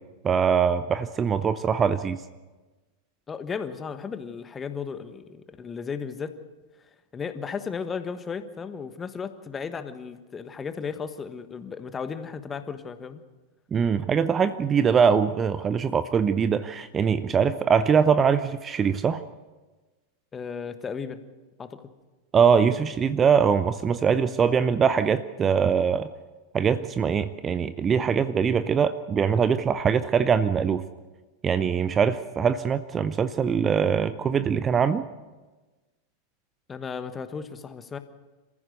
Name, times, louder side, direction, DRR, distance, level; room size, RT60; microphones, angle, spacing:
voice 1, 0.2-2.2 13.7-19.2 22.3-26.1 26.5-30.8 31.4-35.0, right 6 dB, 20° right, 13 dB, 0.7 m, -22 dB
voice 2, 3.3-6.4 7.1-13.2 20.3-21.2 21.6-21.8 36.7-38.0, left 6 dB, 20° left, 10 dB, 1.4 m, -35 dB
27.5 x 15.0 x 6.7 m, 1.2 s
figure-of-eight pair, 90°, 0 cm